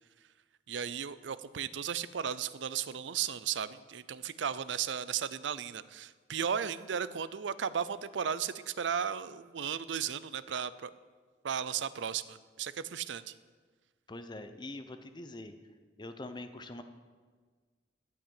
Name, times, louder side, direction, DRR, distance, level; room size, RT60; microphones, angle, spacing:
voice 1, 0.7-10.9 11.4-13.3, right 8 dB, 85° right, 15 dB, 0.5 m, -35 dB
voice 2, 14.1-15.5 16.0-16.8, left 2 dB, 25° left, 8 dB, 0.7 m, -43 dB
12.5 x 5.8 x 8.7 m, 1.5 s
head